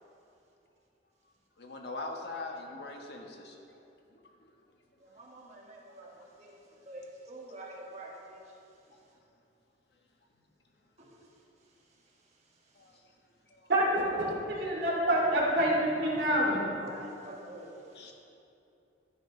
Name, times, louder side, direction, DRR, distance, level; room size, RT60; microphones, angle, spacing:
voice 1, 1.6-3.6 12.8-12.9 13.5-13.6 18.0-18.1, left 2 dB, 60° left, 1 dB, 1.3 m, -41 dB
voice 2, 5.0-8.6 11.0-13.0 16.1-16.3 16.8-18.1, right 1 dB, 35° right, -3 dB, 1.9 m, -49 dB
voice 3, 13.7-16.7, right 1 dB, 65° right, -5 dB, 2.9 m, -27 dB
15.5 x 9.0 x 3.3 m, 2.7 s
head